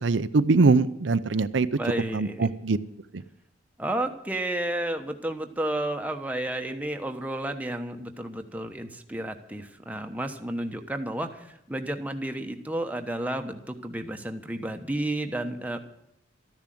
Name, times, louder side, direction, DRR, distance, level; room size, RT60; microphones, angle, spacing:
voice 1, 0.0-1.7 2.1-2.8, right 3 dB, 75° right, 11 dB, 0.6 m, -22 dB
voice 2, 1.8-2.5 3.8-15.8, right 1 dB, 10° right, 5 dB, 1.0 m, -32 dB
13.5 x 10.5 x 7.7 m, 0.81 s
head